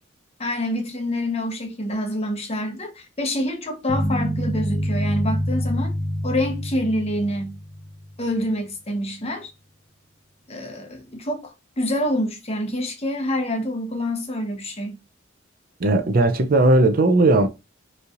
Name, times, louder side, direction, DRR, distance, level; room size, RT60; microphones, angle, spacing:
voice 1, 0.4-5.9 6.2-7.6 8.2-9.5 10.5-15.0, left 1 dB, 30° left, 1.0 m, -26 dB
sound 1, 3.9-8.1, equal, 15° right, 1.2 m, -26 dB
voice 2, 15.8-17.5, right 2 dB, 45° right, 0.5 m, -17 dB
5.2 x 3.2 x 2.5 m
head